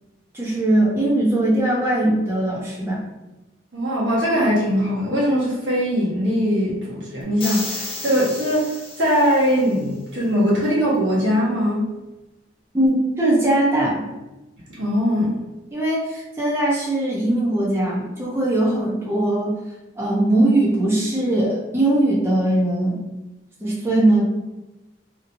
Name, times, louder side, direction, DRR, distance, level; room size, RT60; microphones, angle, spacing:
voice 1, 0.3-3.0 12.7-14.0 15.7-19.5 20.0-23.0 23.6-24.2, right 1 dB, 15° right, -6 dB, 0.6 m, -20 dB
voice 2, 3.7-8.7 9.0-11.8 14.8-15.4, equal, 80° right, -6 dB, 1.2 m, -21 dB
sound 1, 7.4-9.7, left 3 dB, 30° left, 0.8 m, -33 dB
2.9 x 2.7 x 2.6 m, 1.0 s
head